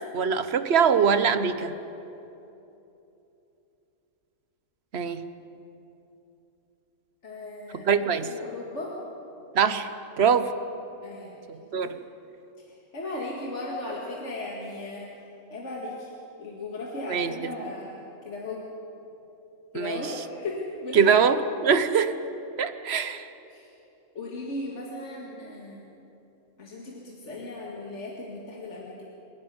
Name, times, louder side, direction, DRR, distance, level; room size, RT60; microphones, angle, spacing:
voice 1, 0.1-1.7 4.9-5.2 7.7-8.3 9.5-9.9 10.2-10.5 11.7-12.0 17.1-17.3 19.7-20.0 20.9-22.2 22.6-23.3, right 6 dB, 55° right, 11 dB, 1.1 m, -22 dB
voice 2, 7.2-7.9 8.2-9.0 11.0-11.4 11.8-12.0 12.6-15.1 15.5-16.1 16.4-18.7 19.7-21.2 23.5-23.7 24.1-25.9 26.6-29.0, left 2 dB, 65° left, -3 dB, 2.4 m, -36 dB
26.5 x 11.0 x 9.5 m, 2.9 s
omnidirectional pair, 1.3 m